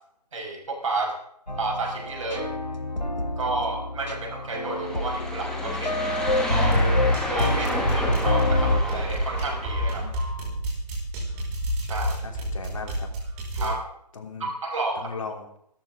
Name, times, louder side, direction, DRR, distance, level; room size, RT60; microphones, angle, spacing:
voice 1, 0.3-1.1 1.6-2.5 3.4-6.8 7.3-10.2 11.8-12.2 13.5-13.8 14.4-15.1, right 3 dB, 50° right, 0 dB, 5.5 m, -31 dB
sound 1, 1.5-8.8, left 1 dB, 90° left, 3.2 m, -27 dB
sound 2, 4.6-10.0, left 1 dB, ahead, 1.5 m, -32 dB
sound 3, 6.6-13.7, right 1 dB, 20° right, 5.2 m, -29 dB
voice 2, 12.2-13.1 13.6-13.8 14.1-14.5 14.9-15.6, left 4 dB, 50° left, 3 dB, 3.3 m, -37 dB
26.5 x 14.0 x 3.7 m, 0.70 s
figure-of-eight pair, 145°, 21 cm